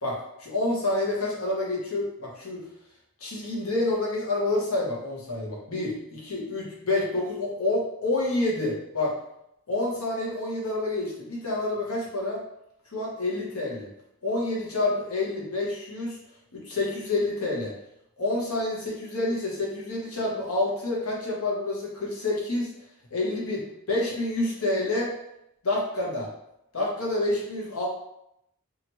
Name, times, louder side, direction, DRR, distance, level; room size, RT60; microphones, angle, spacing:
voice 1, 0.0-2.6 3.2-9.1 9.7-12.4 12.9-13.9 14.2-16.2 16.5-17.7 18.2-22.7 23.1-25.1 25.6-26.3 26.7-27.9, left 2 dB, 70° left, -3 dB, 0.9 m, -28 dB
2.9 x 2.4 x 2.9 m, 0.80 s
head